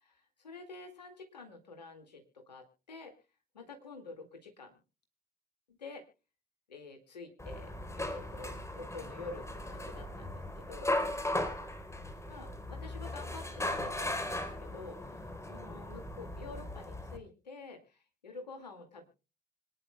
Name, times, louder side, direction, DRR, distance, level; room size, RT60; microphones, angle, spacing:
voice 1, 0.0-3.1 3.5-4.7 5.7-6.0 6.7-7.7 8.0-10.9 12.3-15.2 15.5-19.1, left 3 dB, 85° left, 5 dB, 2.1 m, -48 dB
sound 1, 7.4-17.2, left 1 dB, 15° left, 3.6 m, -38 dB
26.0 x 10.5 x 2.2 m, 0.33 s
figure-of-eight pair, 45°, 21 cm